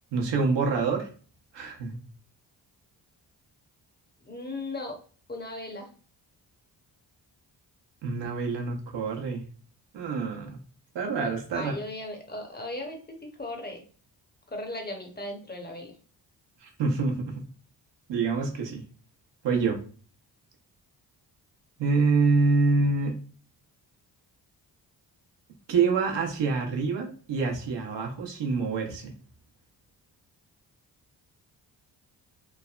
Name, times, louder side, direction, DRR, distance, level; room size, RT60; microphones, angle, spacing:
voice 1, 0.1-1.1 1.5-2.0 8.0-9.4 9.9-10.6 10.9-11.7 16.6-17.4 18.1-18.8 19.4-19.8 21.8-23.2 25.7-29.1, right 4 dB, 70° right, 2 dB, 0.9 m, -26 dB
voice 2, 4.3-5.0 5.3-5.9 11.5-13.0 13.4-13.8 14.5-15.9, left 2 dB, 20° left, 2 dB, 0.8 m, -36 dB
3.2 x 2.1 x 2.4 m, 0.41 s
cardioid pair, 60°, 44 cm